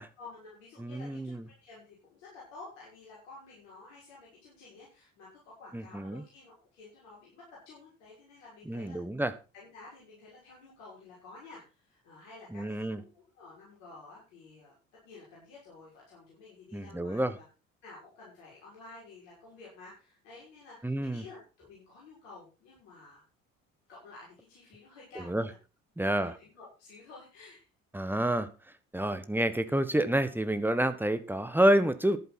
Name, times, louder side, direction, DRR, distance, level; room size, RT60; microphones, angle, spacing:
voice 1, 0.2-9.2 9.5-14.7 15.0-17.4 17.8-23.2 23.9-25.6 26.0-27.7, left 3 dB, 65° left, -6 dB, 6.5 m, -52 dB
voice 2, 0.8-1.4 5.7-6.2 8.7-9.3 12.5-13.0 16.7-17.3 20.8-21.2 25.3-25.4 26.0-26.3 27.9-28.5 28.9-32.2, right 1 dB, 5° right, 11 dB, 1.3 m, -28 dB
13.0 x 11.0 x 4.3 m, 0.32 s
figure-of-eight pair, 55°, 40 cm